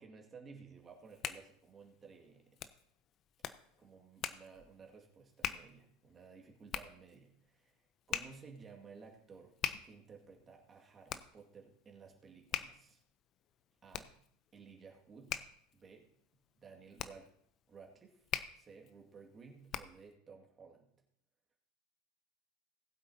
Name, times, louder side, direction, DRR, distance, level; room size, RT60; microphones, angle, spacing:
voice 1, 0.0-2.7 3.8-9.6 9.8-13.0 13.8-14.2 14.5-16.1 16.6-17.3 17.7-18.3 18.5-20.9, right 5 dB, 30° right, 1 dB, 2.0 m, -56 dB
Hands, 0.8-20.1, left 10 dB, 45° left, 0.7 m, -45 dB
19.0 x 8.2 x 2.8 m, 0.64 s
hypercardioid pair, 85°, 0 cm